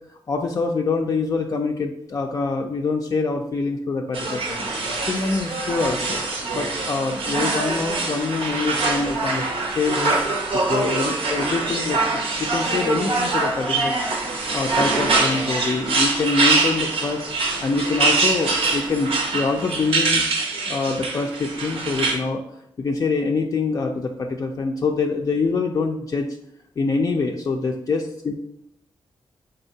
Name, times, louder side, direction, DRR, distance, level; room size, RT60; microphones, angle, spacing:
voice 1, 0.3-4.7 5.0-6.2 6.5-10.2 10.7-14.0 14.3-17.2 17.6-26.3 26.8-28.3, left 4 dB, 40° left, 2 dB, 0.3 m, -25 dB
sound 1, 4.1-22.1, right 3 dB, 85° right, 0.8 m, -24 dB
4.3 x 3.9 x 2.7 m, 0.77 s
wide cardioid pair, 110°, 9 cm